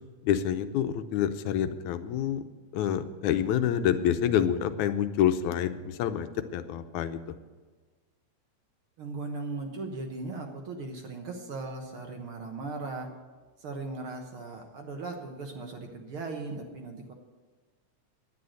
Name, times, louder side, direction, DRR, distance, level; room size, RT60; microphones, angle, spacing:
voice 1, 0.2-2.4 2.7-7.2, left 10 dB, 85° left, 9 dB, 2.1 m, -27 dB
voice 2, 9.0-13.1 13.6-17.1, right 3 dB, 55° right, 3 dB, 1.8 m, -38 dB
10.5 x 9.6 x 6.4 m, 1.4 s
omnidirectional pair, 3.3 m